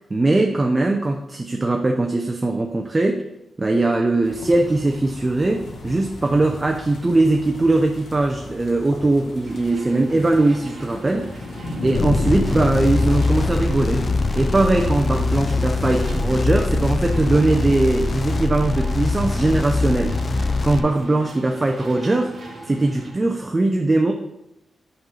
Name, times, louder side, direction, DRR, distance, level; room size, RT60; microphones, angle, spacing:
voice 1, 0.1-3.2 3.6-11.3 11.8-20.2 20.6-22.4 22.6-24.1, right 2 dB, 20° right, 2 dB, 0.5 m, -20 dB
sound 1, 4.2-17.5, left 1 dB, 65° left, 1.0 m, -32 dB
sound 2, 9.4-23.1, right 2 dB, 45° right, 1.5 m, -40 dB
sound 3, 11.9-20.8, left 3 dB, 40° left, 0.4 m, -23 dB
5.5 x 3.8 x 5.6 m, 0.87 s
wide cardioid pair, 120°, 0 cm